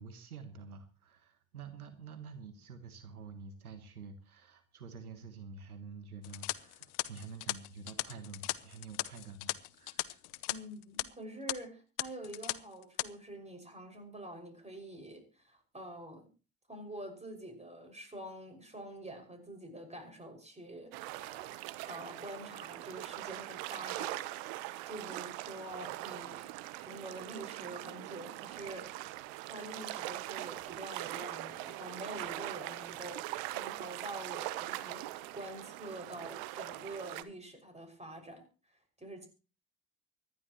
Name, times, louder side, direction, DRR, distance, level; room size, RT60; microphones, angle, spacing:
voice 1, 0.0-10.2, right 5 dB, 90° right, 1.3 m, -48 dB
sound 1, 6.2-10.5 10.8-11.0 11.5-11.6 12.0-12.5 12.8-13.1, left 21 dB, 65° left, 0.9 m, -37 dB
voice 2, 10.5-16.3 16.7-29.1 29.5-39.3, right 1 dB, 15° right, 6.1 m, -47 dB
sound 2, 20.9-37.2, right 17 dB, 70° right, 1.1 m, -42 dB
24.5 x 11.0 x 3.1 m
figure-of-eight pair, 55°, 43 cm